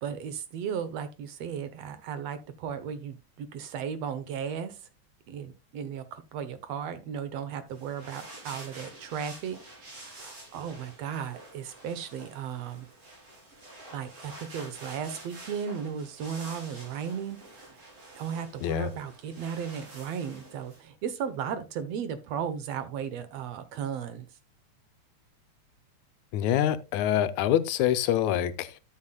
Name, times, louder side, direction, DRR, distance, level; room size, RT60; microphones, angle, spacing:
voice 1, 0.0-4.9 5.3-9.6 9.9-12.9 13.9-17.8 18.1-24.3, right 7 dB, 70° right, 1.8 m, -35 dB
sound 1, 7.7-20.8, right 2 dB, 50° right, 5.1 m, -48 dB
voice 2, 26.3-28.8, left 11 dB, 85° left, 2.0 m, -25 dB
13.0 x 7.6 x 2.2 m
omnidirectional pair, 3.3 m